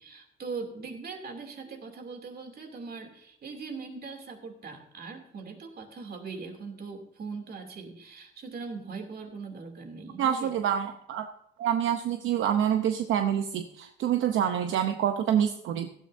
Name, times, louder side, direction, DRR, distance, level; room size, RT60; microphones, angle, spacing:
voice 1, 0.0-10.5, right 4 dB, 50° right, 4 dB, 2.8 m, -40 dB
voice 2, 10.2-11.3 11.6-15.9, right 9 dB, 75° right, 6 dB, 0.8 m, -27 dB
16.0 x 13.0 x 2.7 m, 0.75 s
cardioid pair, 90°, 20 cm